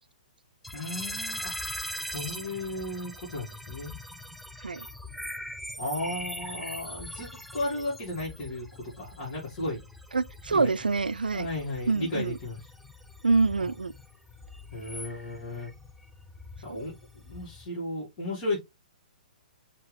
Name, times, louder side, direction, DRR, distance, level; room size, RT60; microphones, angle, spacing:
sound 1, 0.6-17.7, equal, ahead, 0.4 m, -42 dB
voice 1, 0.7-1.6 2.0-3.9 5.8-9.8 10.5-10.7 11.3-12.7 13.6-13.7 14.7-15.7 16.6-18.6, left 2 dB, 40° left, 2.1 m, -35 dB
voice 2, 10.1-11.5 11.9-12.4 13.2-13.9 16.7-16.8, right 3 dB, 80° right, 0.3 m, -26 dB
4.4 x 2.9 x 3.3 m
figure-of-eight pair, 120°, 5 cm